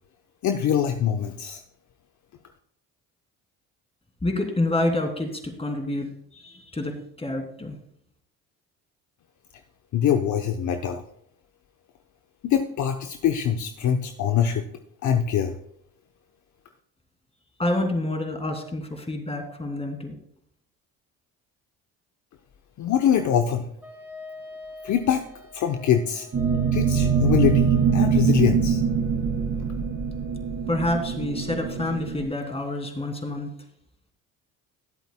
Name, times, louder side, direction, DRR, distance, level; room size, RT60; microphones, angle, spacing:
voice 1, 0.4-1.6 9.9-11.0 12.4-14.7 15.0-15.6 22.8-23.7 24.8-25.3 25.5-26.3 26.7-28.8, left 8 dB, 55° left, 6 dB, 0.9 m, -23 dB
voice 2, 4.2-7.8 17.6-20.2 30.7-33.5, left 1 dB, 15° left, 3 dB, 2.7 m, -28 dB
Wind instrument woodwind instrument, 23.8-28.2, left 2 dB, 5° right, 2.7 m, -42 dB
sound 1, 26.3-32.3, right 6 dB, 40° right, 3.3 m, -23 dB
20.0 x 8.1 x 2.2 m, 0.71 s
supercardioid pair, 70°, 35 cm